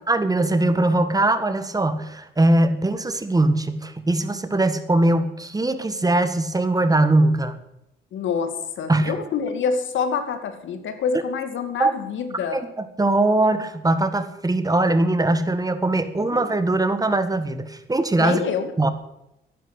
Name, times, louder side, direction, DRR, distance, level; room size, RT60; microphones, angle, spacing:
voice 1, 0.0-7.6 8.9-9.2 11.8-11.9 12.5-18.4 18.8-18.9, right 2 dB, 20° right, 10 dB, 1.6 m, -21 dB
voice 2, 8.1-12.6 16.3-16.4 18.2-18.7, left 6 dB, 75° left, 9 dB, 2.4 m, -26 dB
14.0 x 11.0 x 8.2 m, 0.84 s
cardioid pair, 90°, 20 cm